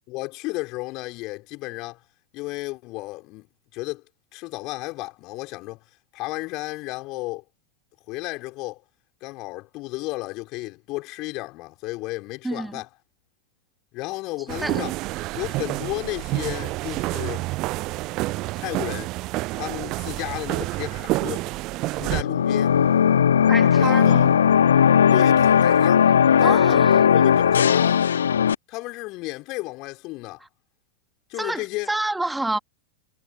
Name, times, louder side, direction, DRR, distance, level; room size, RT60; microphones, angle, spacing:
voice 1, 0.1-2.0 2.3-3.5 3.7-4.0 4.3-5.8 6.1-7.4 8.1-8.8 9.2-12.9 13.9-15.0 15.3-17.4 18.6-19.1 19.5-21.5 21.9-22.7 23.8-24.3 25.1-26.1 26.4-28.0 28.7-30.4 31.3-31.9, left 22 dB, 40° left, 4.6 m, -33 dB
voice 2, 12.4-12.8 14.5-14.9 23.5-24.4 26.4-26.9 31.4-32.6, right 2 dB, 5° right, 2.7 m, -28 dB
sound 1, 14.5-22.2, right 20 dB, 40° right, 0.8 m, -28 dB
sound 2, 22.1-28.5, left 8 dB, 65° left, 0.6 m, -17 dB
figure-of-eight pair, 90°, 0 cm